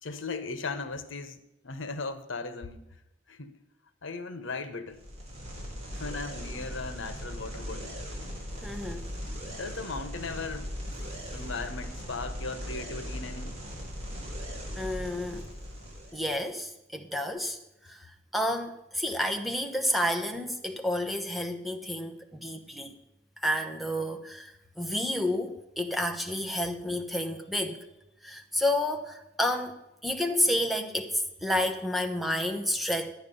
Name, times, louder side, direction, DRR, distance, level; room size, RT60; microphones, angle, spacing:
voice 1, 0.0-2.8 3.3-3.6 4.0-5.0 5.9-8.0 9.4-10.7 11.3-13.6 22.6-22.8, left 4 dB, 85° left, 1.0 m, -37 dB
sound 1, 4.9-16.4, equal, 35° right, 3.6 m, -39 dB
voice 2, 8.6-9.1 14.8-15.5 16.1-17.6 17.8-23.0 23.4-27.8 28.2-33.1, left 1 dB, ahead, 1.0 m, -30 dB
12.0 x 9.4 x 5.4 m
head